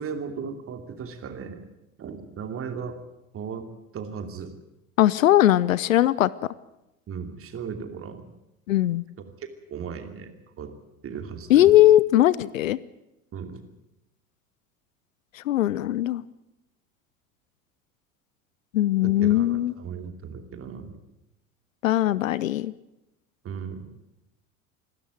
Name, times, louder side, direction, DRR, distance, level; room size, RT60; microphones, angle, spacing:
voice 1, 0.0-1.7 2.0-3.0 3.3-3.7 3.9-4.5 7.1-8.2 9.4-10.3 10.6-10.7 11.0-11.8 13.3-13.6 19.0-21.0 23.4-23.9, right 6 dB, 30° right, 7 dB, 2.8 m, -36 dB
voice 2, 5.0-6.3 8.7-9.0 11.5-12.8 15.4-16.2 18.7-19.7 21.8-22.7, left 13 dB, 70° left, 20 dB, 0.8 m, -19 dB
26.5 x 13.0 x 9.2 m, 0.91 s
figure-of-eight pair, 70°, 42 cm